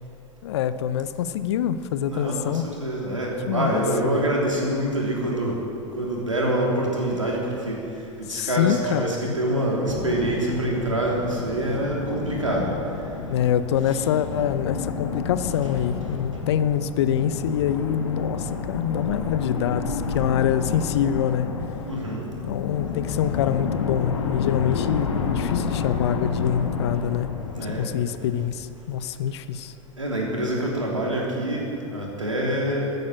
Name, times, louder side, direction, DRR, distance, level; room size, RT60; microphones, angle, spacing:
voice 1, 0.4-2.6 3.5-4.2 8.3-9.4 13.3-21.5 22.5-27.3 27.8-29.7, left 9 dB, 60° left, 13 dB, 0.7 m, -25 dB
voice 2, 2.1-5.6 6.0-7.8 8.2-12.7 13.9-14.0 21.8-22.3 27.5-27.9 30.0-32.9, right 1 dB, 85° right, -2 dB, 3.2 m, -26 dB
sound 1, 9.9-28.3, left 6 dB, 75° left, 1.5 m, -30 dB
13.5 x 9.4 x 9.0 m, 2.7 s
figure-of-eight pair, 90°, 16 cm